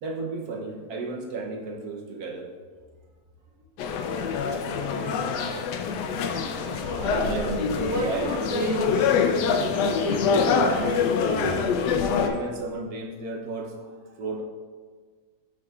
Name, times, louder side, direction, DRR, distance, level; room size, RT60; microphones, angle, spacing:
voice 1, 0.0-2.5 7.0-8.3 12.2-14.4, right 3 dB, 60° right, 1 dB, 1.1 m, -34 dB
sound 1, 3.8-12.3, left 5 dB, 70° left, 1.0 m, -25 dB
voice 2, 6.7-11.7, right 1 dB, 15° right, -2 dB, 0.6 m, -32 dB
12.0 x 4.7 x 2.4 m, 1.5 s
omnidirectional pair, 2.2 m